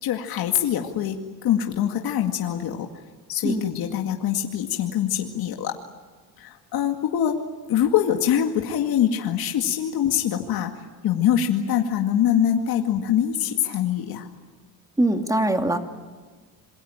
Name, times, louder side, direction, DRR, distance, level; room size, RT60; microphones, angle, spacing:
voice 1, 0.0-2.9 3.3-5.8 6.4-7.4 7.7-14.3, left 10 dB, 70° left, 3 dB, 2.2 m, -24 dB
voice 2, 15.0-15.8, right 1 dB, 10° right, 5 dB, 2.5 m, -22 dB
26.5 x 23.0 x 8.9 m, 1.4 s
cardioid pair, 115°, 38 cm